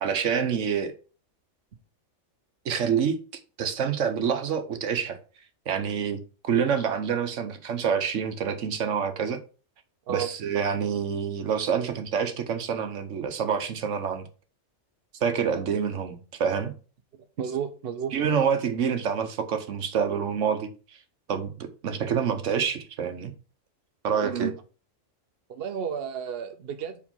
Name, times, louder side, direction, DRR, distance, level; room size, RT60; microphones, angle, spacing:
voice 1, 0.0-0.9 2.6-3.2 3.6-5.2 5.7-6.2 6.4-9.4 10.1-14.3 15.2-16.7 18.1-20.7 21.3-23.3 24.0-24.5, right 7 dB, 75° right, 1.2 m, -27 dB
voice 2, 17.4-18.1 24.2-24.5 25.5-27.0, right 8 dB, 55° right, 0.9 m, -32 dB
5.0 x 4.7 x 5.4 m
omnidirectional pair, 1.3 m